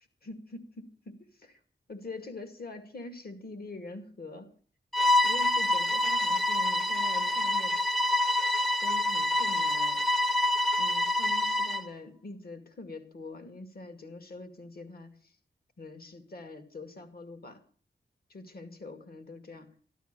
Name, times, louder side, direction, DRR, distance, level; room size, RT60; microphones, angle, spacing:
voice 1, 0.2-1.6 1.9-4.5 5.2-7.8 8.8-10.0 10.8-15.3 15.8-17.6 18.3-19.7, left 2 dB, 55° left, 8 dB, 2.3 m, -44 dB
Bowed string instrument, 4.9-11.9, left 1 dB, 5° left, 0.9 m, -26 dB
14.0 x 12.5 x 6.8 m, 0.43 s
wide cardioid pair, 125°, 19 cm